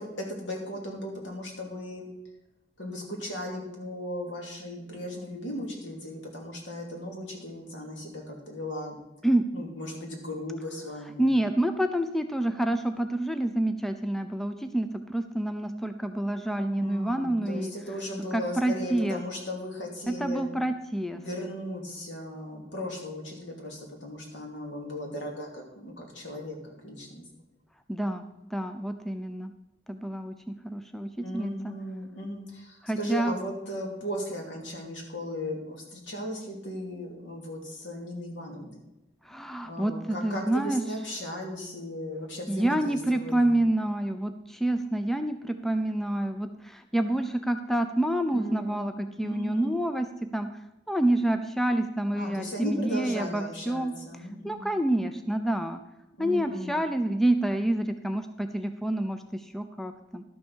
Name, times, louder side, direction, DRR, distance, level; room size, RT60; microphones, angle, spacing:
voice 1, 0.0-2.1 2.8-9.0 9.5-11.3 16.7-20.5 21.1-27.2 31.2-38.8 39.6-43.5 48.3-49.8 52.2-54.7 56.2-56.8, equal, 85° left, 0 dB, 2.7 m, -37 dB
voice 2, 11.2-17.7 18.3-19.2 20.1-21.2 27.9-28.2 28.5-29.5 29.9-31.7 32.8-33.3 39.3-40.8 42.5-50.5 50.9-53.9 54.4-55.8 56.2-60.2, right 1 dB, ahead, 7 dB, 0.5 m, -28 dB
12.0 x 6.3 x 6.3 m, 0.91 s
head